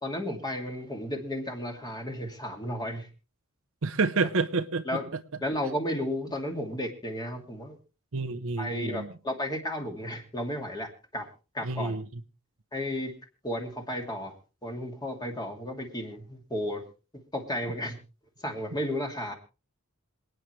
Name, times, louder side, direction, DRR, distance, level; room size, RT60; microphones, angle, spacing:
voice 1, 0.0-3.1 4.8-5.1 5.4-7.8 8.6-11.3 11.5-12.0 12.7-13.1 13.4-14.3 14.6-16.8 17.3-18.0 18.4-19.3, left 1 dB, 20° left, 2.6 m, -33 dB
voice 2, 3.8-4.8 8.1-9.1 11.6-12.0, right 3 dB, 70° right, 0.9 m, -28 dB
27.0 x 9.3 x 3.2 m
head